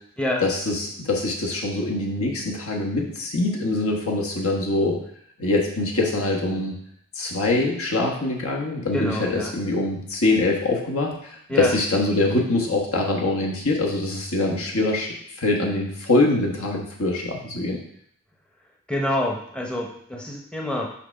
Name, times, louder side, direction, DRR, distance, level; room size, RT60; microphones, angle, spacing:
voice 1, 0.4-5.0 5.4-6.8 7.1-17.8, left 2 dB, 75° left, -1 dB, 1.2 m, -24 dB
voice 2, 8.9-9.5 11.5-11.7 18.9-20.9, left 1 dB, 5° left, -1 dB, 0.7 m, -27 dB
5.8 x 3.5 x 5.4 m, 0.69 s
head